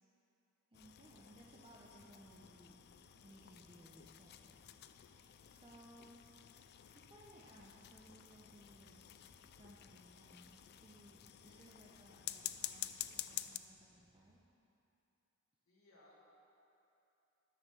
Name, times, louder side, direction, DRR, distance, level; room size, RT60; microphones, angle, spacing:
sound 1, 0.7-13.6, left 13 dB, 50° left, 0.3 m, -50 dB
voice 1, 0.7-2.8 3.2-4.6 4.9-6.2 6.9-9.0 9.5-14.4, right 1 dB, 25° right, -4 dB, 0.9 m, -61 dB
sound 2, 2.0-14.4, right 2 dB, 80° right, 0.8 m, -73 dB
voice 2, 11.4-11.7 15.6-16.2, left 1 dB, 70° left, -8 dB, 2.6 m, -66 dB
10.0 x 5.9 x 6.9 m, 2.9 s
head